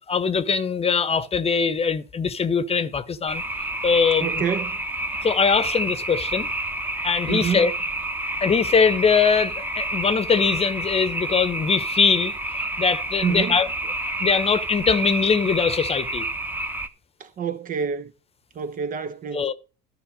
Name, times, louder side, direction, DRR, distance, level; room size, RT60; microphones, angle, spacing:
voice 1, 0.1-3.4 3.8-4.4 5.2-6.5 7.0-7.7 8.4-12.3 12.8-13.7 14.2-16.3 19.3-19.5, left 5 dB, 30° left, 1.0 m, -21 dB
sound 1, 3.3-16.9, right 1 dB, 10° right, 1.1 m, -29 dB
voice 2, 4.2-4.7 7.3-7.7 13.2-13.6 17.2-18.1 18.6-19.5, right 7 dB, 40° right, 0.9 m, -27 dB
11.5 x 5.7 x 6.4 m
supercardioid pair, 85°, 21 cm